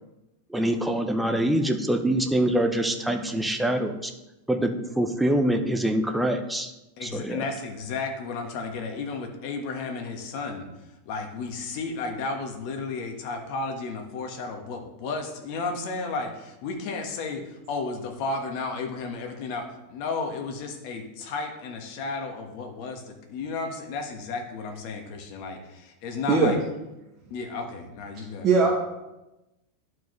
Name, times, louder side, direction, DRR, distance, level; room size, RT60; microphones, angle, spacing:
voice 1, 0.5-4.1 4.5-6.7 7.0-7.5, right 1 dB, 5° right, 5 dB, 0.6 m, -25 dB
voice 2, 7.0-10.7 11.0-26.6 27.3-28.5, left 4 dB, 50° left, 3 dB, 1.3 m, -33 dB
voice 3, 26.3-26.5 28.4-28.7, right 4 dB, 25° right, -3 dB, 1.1 m, -19 dB
11.5 x 4.6 x 3.2 m, 0.98 s
supercardioid pair, 155°, 0 cm